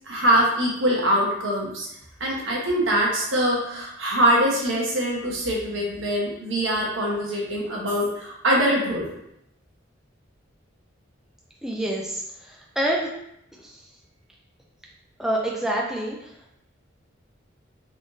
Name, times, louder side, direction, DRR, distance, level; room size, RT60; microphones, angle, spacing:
voice 1, 0.1-1.9 2.2-9.1, equal, 75° right, -3 dB, 1.1 m, -23 dB
voice 2, 11.6-13.1 13.6-13.8 15.2-16.3, right 1 dB, ahead, -2 dB, 0.3 m, -27 dB
3.6 x 3.6 x 2.6 m, 0.78 s
head